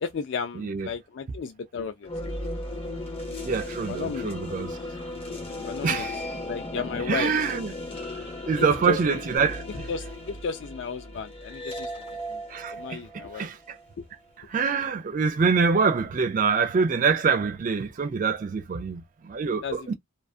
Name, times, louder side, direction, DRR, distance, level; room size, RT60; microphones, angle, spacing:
voice 1, 0.0-2.5 3.9-4.3 5.6-6.1 6.4-7.3 8.6-9.2 9.9-11.9 12.3-12.4 12.7-13.5 14.0-14.1 19.6-19.9, left 5 dB, 55° left, 0.3 m, -34 dB
voice 2, 0.6-0.9 3.4-4.8 5.8-6.2 7.1-7.7 8.5-9.6 12.5-13.0 13.3-13.8 14.5-19.9, right 5 dB, 40° right, 0.3 m, -25 dB
sound 1, 2.0-14.2, left 1 dB, 30° left, 0.9 m, -36 dB
sound 2, 9.4-11.5, right 2 dB, 80° left, 0.7 m, -44 dB
2.5 x 2.3 x 2.4 m
head